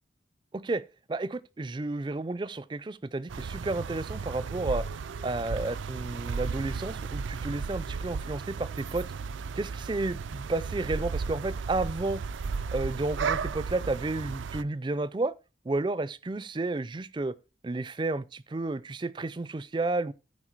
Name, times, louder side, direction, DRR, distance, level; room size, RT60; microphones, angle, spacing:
voice 1, 0.5-0.8 1.1-4.8 5.2-9.1 9.6-12.2 12.7-15.3 15.6-17.3 17.6-20.1, right 2 dB, 25° right, 0.4 m, -32 dB
sound 1, 3.3-14.6, right 5 dB, 90° right, 0.4 m, -34 dB
13.5 x 4.8 x 4.5 m
head